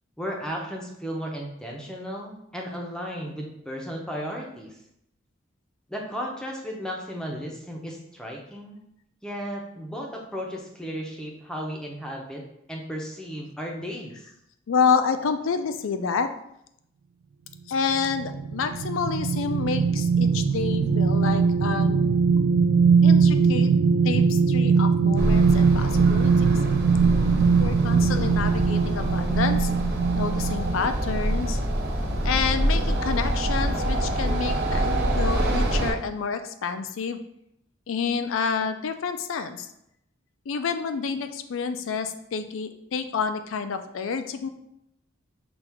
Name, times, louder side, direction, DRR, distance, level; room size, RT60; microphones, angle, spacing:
voice 1, 0.2-4.8 5.9-8.8 9.2-14.3, equal, 5° left, -1 dB, 0.6 m, -35 dB
voice 2, 14.7-16.3 17.7-22.0 23.0-23.7 24.0-26.5 27.6-29.7 30.2-31.6 32.2-37.2 37.9-39.7 40.5-44.5, left 5 dB, 80° left, 9 dB, 0.4 m, -28 dB
sound 1, 17.9-30.8 31.3-31.5, right 5 dB, 75° right, 0.3 m, -21 dB
sound 2, 25.2-35.9, right 1 dB, 55° right, 1.1 m, -26 dB
5.9 x 2.4 x 3.4 m, 0.78 s
head